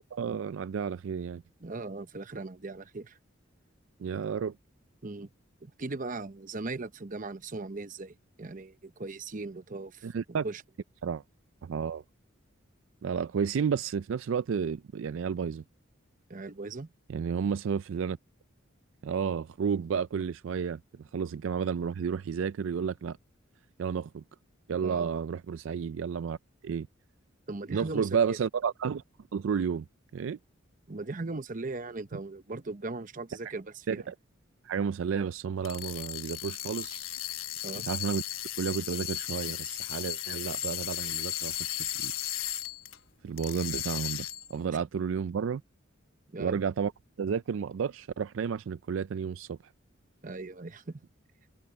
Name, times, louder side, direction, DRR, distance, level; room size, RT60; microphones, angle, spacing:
voice 1, 0.1-1.4 4.0-4.5 10.0-10.5 11.0-11.2 11.6-12.0 13.0-15.6 17.1-18.2 19.0-20.8 21.1-23.2 23.8-24.2 24.7-26.4 26.6-26.9 27.7-29.0 29.3-29.9 30.1-30.4 33.9-34.1 34.6-37.1 37.9-38.2 38.6-42.1 43.2-45.6 46.4-46.9 47.2-49.6, right 6 dB, 70° right, 0.4 m, -31 dB
voice 2, 1.6-3.2 5.0-5.3 5.6-10.1 10.4-10.6 16.3-16.9 24.8-25.1 27.5-28.4 30.9-34.1 37.6-37.9 46.3-46.6 50.2-51.0, right 3 dB, 40° right, 0.9 m, -38 dB
sound 1, 35.6-43.0 43.4-44.6, left 12 dB, 85° left, 1.2 m, -35 dB
head